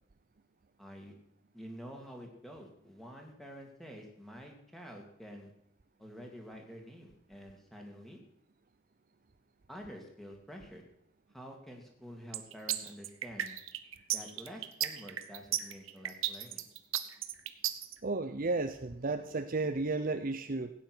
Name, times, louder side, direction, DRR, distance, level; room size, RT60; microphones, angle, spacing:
voice 1, 0.8-1.1 1.5-5.5 6.0-8.2 9.7-10.8 11.3-13.6 14.1-16.6, equal, ahead, 1 dB, 2.2 m, -48 dB
sound 1, 12.3-17.9, right 12 dB, 70° right, 0.9 m, -34 dB
voice 2, 18.0-20.7, right 3 dB, 40° right, 8 dB, 0.6 m, -33 dB
16.0 x 9.3 x 6.2 m, 0.75 s
head